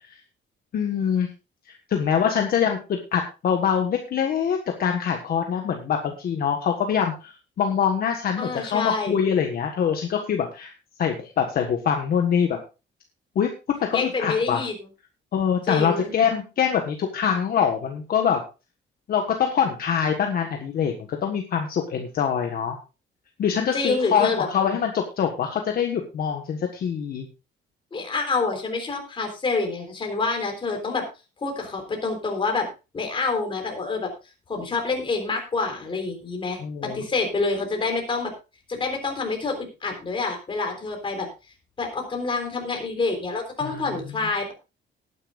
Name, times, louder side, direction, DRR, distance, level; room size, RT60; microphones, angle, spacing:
voice 1, 0.7-1.3 1.9-10.7 11.0-12.6 13.3-13.5 13.9-14.6 15.3-18.4 19.1-22.8 23.4-27.3 36.6-37.0 43.6-44.2, left 7 dB, 50° left, 3 dB, 1.5 m, -24 dB
voice 2, 8.4-9.2 13.9-14.7 15.7-16.1 23.7-24.5 27.9-31.1 31.4-32.7 32.9-34.1 34.5-38.3 38.7-41.3 41.8-44.5, left 3 dB, 25° left, 3 dB, 3.8 m, -27 dB
19.0 x 10.0 x 2.5 m, 0.30 s
cardioid pair, 175°, 19 cm